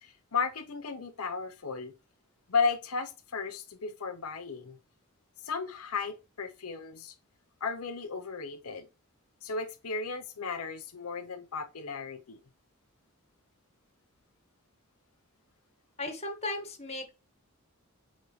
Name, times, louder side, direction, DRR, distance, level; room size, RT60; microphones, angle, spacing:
voice 1, 0.0-1.9 2.5-4.8 5.4-7.1 7.6-8.9 9.4-12.4, left 5 dB, 90° left, 0.7 m, -34 dB
voice 2, 16.0-17.1, left 2 dB, 30° left, 1.6 m, -36 dB
8.1 x 4.1 x 3.1 m
head